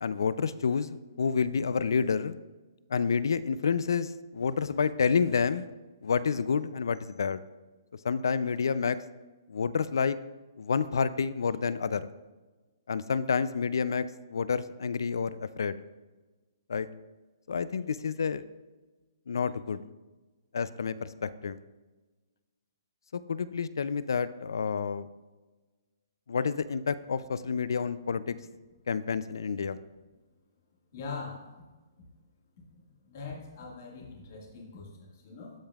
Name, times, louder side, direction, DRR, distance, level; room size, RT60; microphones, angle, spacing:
voice 1, 0.0-2.4 2.9-5.7 6.0-7.4 8.0-9.0 9.5-10.2 10.6-12.1 12.9-15.8 16.7-16.9 17.5-18.4 19.3-19.8 20.5-21.6 23.1-25.1 26.3-28.4 28.9-29.8, left 6 dB, 75° left, 16 dB, 0.4 m, -29 dB
voice 2, 30.9-31.6 32.7-35.5, left 4 dB, 40° left, -2 dB, 1.8 m, -42 dB
13.0 x 5.1 x 2.4 m, 1.2 s
hypercardioid pair, 175°, 2 cm